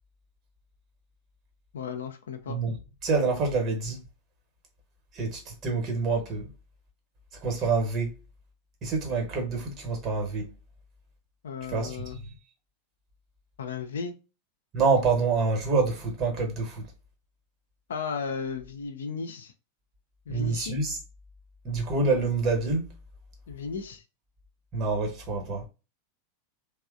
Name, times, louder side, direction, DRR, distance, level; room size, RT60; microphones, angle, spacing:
voice 1, 1.7-2.6 11.4-12.2 13.6-14.1 17.9-19.5 20.3-20.8 23.5-24.0, left 5 dB, 65° left, 0.5 m, -35 dB
voice 2, 3.0-4.0 5.1-6.5 7.4-8.1 8.8-10.4 11.7-12.0 14.7-16.8 20.3-21.0 21.6-22.9 24.7-25.6, right 4 dB, 35° right, 1.1 m, -26 dB
3.2 x 2.1 x 2.4 m
figure-of-eight pair, 90°, 0 cm